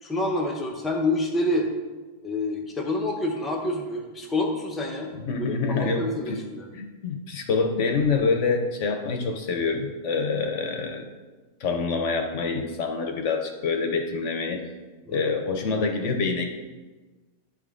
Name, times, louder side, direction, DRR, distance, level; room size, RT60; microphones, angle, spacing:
voice 1, 0.0-1.7 2.2-5.1 5.5-6.7 15.1-15.3, left 2 dB, ahead, -1 dB, 0.3 m, -27 dB
voice 2, 5.3-6.4 6.7-11.1 11.6-14.6 15.1-16.5, left 4 dB, 60° left, 3 dB, 0.9 m, -26 dB
10.5 x 3.7 x 3.6 m, 1.3 s
omnidirectional pair, 1.6 m